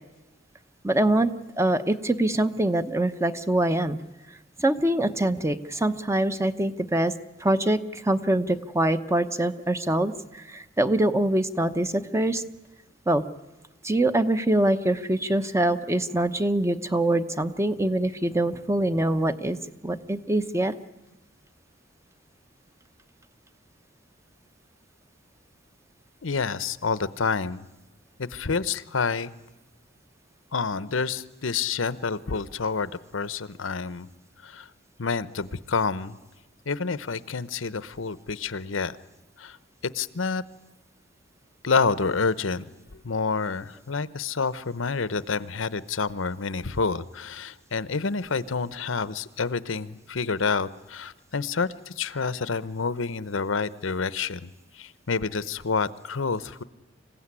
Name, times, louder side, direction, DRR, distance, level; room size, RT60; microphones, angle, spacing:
voice 1, 0.8-1.3 1.6-4.0 4.6-7.1 7.4-12.4 13.1-13.2 13.8-20.7, right 1 dB, 15° right, 11 dB, 0.9 m, -24 dB
voice 2, 26.2-27.7 28.2-29.3 30.5-34.1 34.4-34.7 35.0-36.2 36.7-39.0 39.4-39.6 39.8-40.4 41.6-42.7 42.9-56.6, left 4 dB, 85° left, 16 dB, 0.8 m, -28 dB
26.5 x 16.0 x 9.8 m, 1.1 s
head